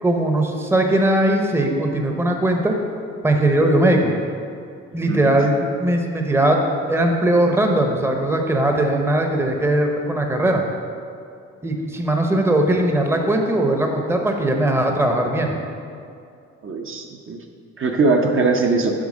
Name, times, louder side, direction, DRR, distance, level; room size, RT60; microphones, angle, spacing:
voice 1, 0.0-2.8 3.2-4.1 4.9-6.6 6.9-10.6 11.6-15.5, right 1 dB, 10° right, 3 dB, 0.7 m, -19 dB
voice 2, 5.1-5.4 16.6-17.4 17.8-18.9, right 3 dB, 45° right, 2 dB, 0.7 m, -20 dB
7.4 x 3.5 x 6.2 m, 2.4 s
cardioid pair, 90°, 30 cm